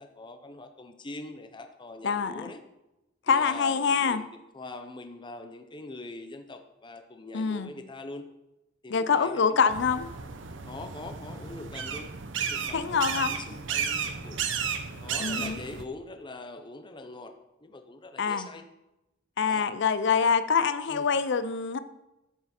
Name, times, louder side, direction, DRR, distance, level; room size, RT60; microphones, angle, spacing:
voice 1, 0.0-2.6 3.3-8.3 8.8-9.7 10.7-12.1 12.4-14.4 15.0-17.3 17.6-18.6 19.4-19.7 20.9-21.1, left 2 dB, 25° left, 6 dB, 0.7 m, -43 dB
voice 2, 2.0-2.4 3.3-4.2 7.3-7.7 8.9-10.1 12.7-13.3 15.2-15.6 18.2-18.5 19.4-21.8, left 6 dB, 60° left, 12 dB, 0.5 m, -25 dB
sound 1, 9.7-15.8, right 7 dB, 65° right, 0.8 m, -33 dB
12.0 x 6.7 x 4.3 m, 0.95 s
head